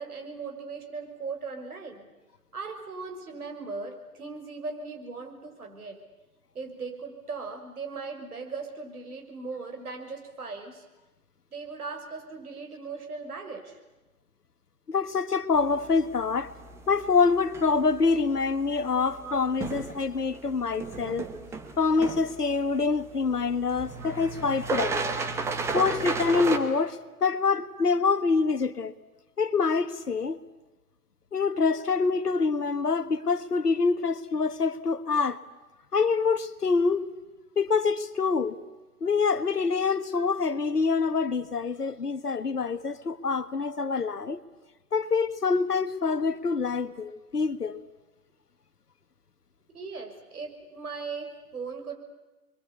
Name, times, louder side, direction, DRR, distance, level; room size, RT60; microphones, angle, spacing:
voice 1, 0.0-2.1 2.5-6.0 6.5-10.8 11.5-13.8 18.7-19.3 20.0-20.1 20.6-20.7 20.9-21.4 23.7-24.1 26.1-26.3 32.6-32.7 40.1-40.3 49.7-52.0, right 4 dB, 70° right, 6.0 m, -39 dB
voice 2, 14.9-16.5 16.9-21.3 21.8-25.1 25.7-28.9 29.4-30.4 31.3-35.4 35.9-37.0 37.6-38.6 39.0-44.4 44.9-47.8, left 4 dB, 85° left, 1.6 m, -26 dB
sound 1, 15.6-26.6, right 4 dB, 5° right, 1.0 m, -35 dB
28.5 x 23.0 x 8.4 m
figure-of-eight pair, 135°, 46 cm